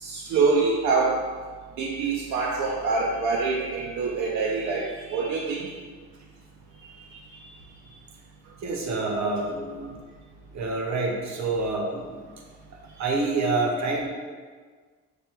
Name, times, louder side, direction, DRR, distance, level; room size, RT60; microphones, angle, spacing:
voice 1, 0.0-1.2 1.8-5.7, right 4 dB, 85° right, -2 dB, 0.5 m, -25 dB
voice 2, 8.6-9.9 10.5-12.2 13.0-14.1, right 3 dB, 65° right, 1 dB, 0.9 m, -27 dB
5.2 x 2.2 x 4.4 m, 1.5 s
cardioid pair, 90°, 30 cm